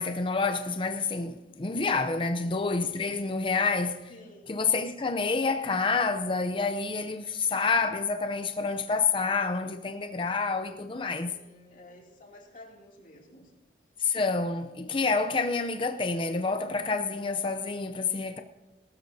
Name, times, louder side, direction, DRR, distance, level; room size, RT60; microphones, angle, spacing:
voice 1, 0.0-4.1 4.5-11.4 14.0-18.4, left 4 dB, 30° left, 0.6 m, -28 dB
voice 2, 4.1-4.5 11.3-13.5, left 1 dB, 50° left, 2.7 m, -51 dB
18.5 x 12.5 x 2.8 m
head